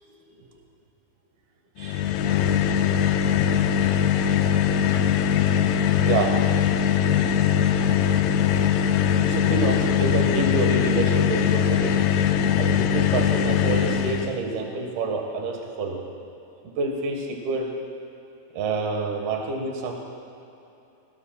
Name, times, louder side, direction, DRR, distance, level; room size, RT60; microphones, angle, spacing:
sound 1, 1.8-14.4, left 8 dB, 80° left, 2.3 m, -21 dB
voice 1, 1.8-2.1 4.9-5.1 6.0-6.4 7.3-7.5 8.0-12.1 12.6-16.0 16.6-17.7 18.5-19.9, right 3 dB, 65° right, 1 dB, 3.3 m, -28 dB
27.0 x 18.0 x 2.4 m, 2.9 s
omnidirectional pair, 5.0 m